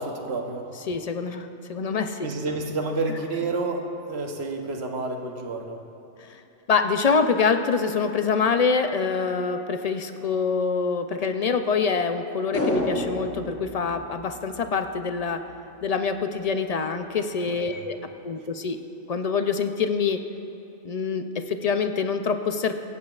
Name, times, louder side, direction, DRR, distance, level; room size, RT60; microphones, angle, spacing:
voice 1, 0.0-0.7 2.2-5.8 17.5-17.8, right 3 dB, 65° right, 3 dB, 1.2 m, -30 dB
voice 2, 0.9-2.3 6.7-15.4 15.8-18.0 18.2-18.8 19.1-20.2 20.8-22.7, left 5 dB, 60° left, 7 dB, 0.4 m, -25 dB
sound 1, 12.5-15.0 15.3-15.4, left 1 dB, 15° left, 0.9 m, -29 dB
24.5 x 8.4 x 2.4 m, 2.9 s
omnidirectional pair, 1.2 m